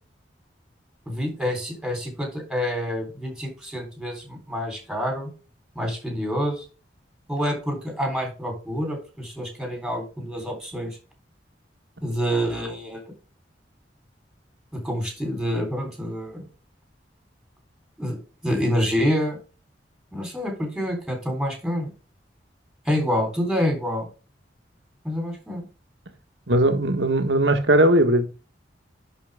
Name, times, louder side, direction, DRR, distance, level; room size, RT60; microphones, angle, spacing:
voice 1, 1.1-5.3 5.8-6.6 7.3-11.0 12.0-13.0 14.7-16.5 18.0-19.4 20.1-21.9 22.9-24.1 25.0-25.7, equal, ahead, 3.7 m, -27 dB
voice 2, 26.5-28.3, right 1 dB, 80° right, 1.5 m, -19 dB
11.0 x 4.9 x 3.6 m
head